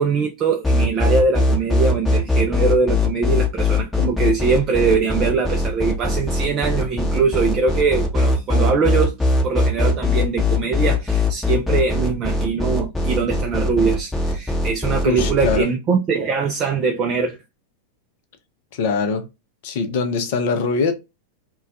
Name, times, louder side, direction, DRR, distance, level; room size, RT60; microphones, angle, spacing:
voice 1, 0.0-9.1 9.4-17.4, right 5 dB, 30° right, 0.3 m, -22 dB
sound 1, 0.6-15.6, left 2 dB, 10° left, 0.7 m, -20 dB
voice 2, 15.0-15.7 18.7-19.2 19.6-20.9, left 4 dB, 50° left, 0.5 m, -22 dB
2.2 x 2.1 x 2.6 m
figure-of-eight pair, 90°, 0 cm